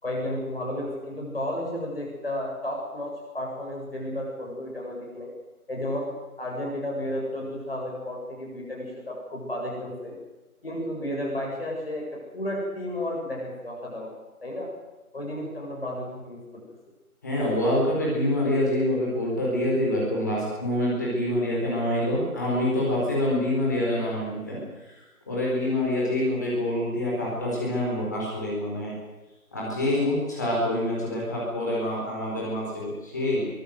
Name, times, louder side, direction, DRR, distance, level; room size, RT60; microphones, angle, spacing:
voice 1, 0.0-5.3 5.7-6.1 6.4-10.2 10.6-12.0 12.3-14.1 14.4-14.7 15.1-16.4, left 1 dB, 40° left, -2 dB, 7.8 m, -32 dB
voice 2, 17.2-24.6 24.8-28.9 29.5-33.5, left 1 dB, 10° left, -5 dB, 4.5 m, -26 dB
23.0 x 19.5 x 8.0 m, 1.1 s
figure-of-eight pair, 175°, 44 cm